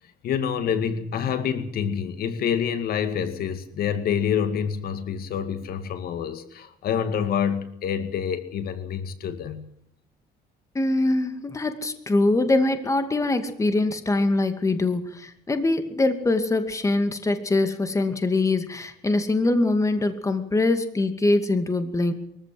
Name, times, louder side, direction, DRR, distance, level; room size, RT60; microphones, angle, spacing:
voice 1, 0.2-9.6, left 8 dB, 65° left, 9 dB, 2.2 m, -27 dB
voice 2, 10.7-22.1, left 2 dB, 20° left, 8 dB, 2.4 m, -23 dB
23.0 x 15.0 x 7.8 m, 0.71 s
cardioid pair, 110°, 17 cm